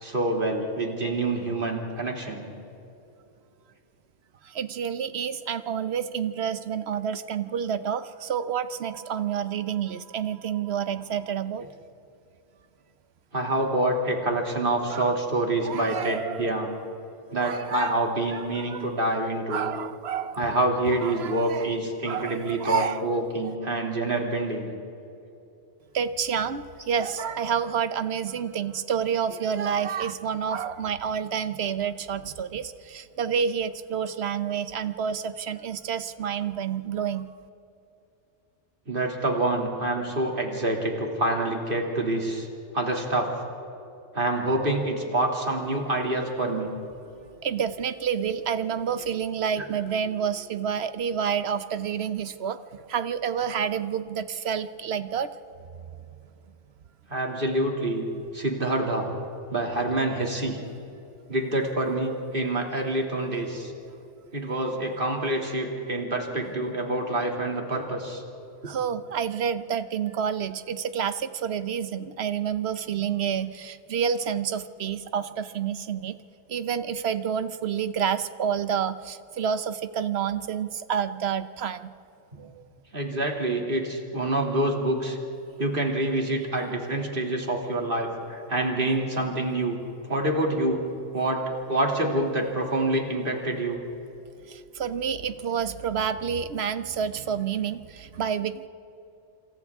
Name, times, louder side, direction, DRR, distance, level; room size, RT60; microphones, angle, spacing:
voice 1, 0.0-2.5 13.3-16.8 17.3-19.7 20.3-24.7 38.9-42.5 42.7-43.3 44.1-46.7 49.6-49.7 57.1-58.1 58.3-59.1 59.5-60.6 61.3-63.7 64.3-68.2 82.9-85.2 85.6-89.8 90.1-90.8 91.1-91.4 91.7-93.8, right 1 dB, 45° right, 1 dB, 2.8 m, -27 dB
voice 2, 4.4-11.7 14.9-15.1 15.6-16.5 17.4-18.0 18.3-18.8 19.5-20.5 21.0-21.7 22.1-23.0 25.9-37.3 47.4-52.6 52.9-55.3 68.6-76.2 76.5-81.9 82.4-82.7 94.5-98.7, right 7 dB, 65° right, 12 dB, 1.0 m, -29 dB
27.5 x 27.0 x 3.6 m, 2.8 s
omnidirectional pair, 1.2 m